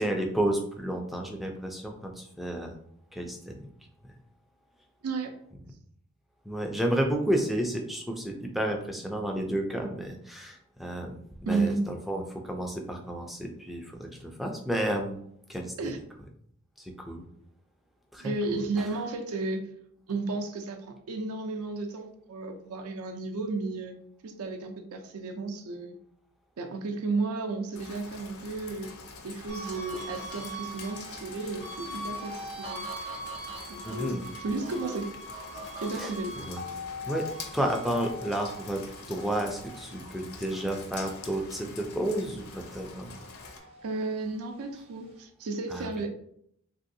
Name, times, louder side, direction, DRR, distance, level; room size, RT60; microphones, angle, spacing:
voice 1, 0.0-2.8 3.1-3.7 6.5-15.2 15.5-15.9 16.8-17.3 18.1-18.7 33.8-34.2 36.0-36.7 37.0-43.1 45.7-45.9, right 1 dB, ahead, 2 dB, 0.3 m, -31 dB
voice 2, 5.0-5.3 11.5-11.8 15.8-16.0 18.2-19.6 20.1-23.9 24.2-26.0 26.6-28.9 29.2-32.9 33.7-35.1 35.8-36.4 43.8-46.1, right 3 dB, 75° right, 6 dB, 0.4 m, -33 dB
Rain, 27.7-43.6, left 4 dB, 70° left, 0.5 m, -46 dB
sound 1, 29.5-42.1 42.5-44.2, equal, 30° right, 0.7 m, -42 dB
3.2 x 2.6 x 2.6 m, 0.68 s
head